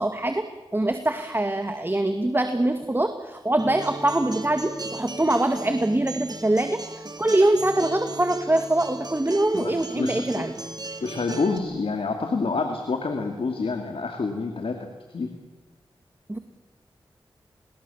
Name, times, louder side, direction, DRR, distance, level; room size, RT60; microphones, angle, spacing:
voice 1, 0.0-10.5 16.3-16.4, right 1 dB, 20° right, 7 dB, 2.0 m, -24 dB
Acoustic guitar, 3.6-11.6, right 2 dB, 45° right, 3.1 m, -37 dB
voice 2, 9.5-10.5 11.0-15.3, left 4 dB, 75° left, 4 dB, 2.6 m, -28 dB
27.5 x 21.0 x 7.2 m, 1.2 s
cardioid pair, 45°, 10 cm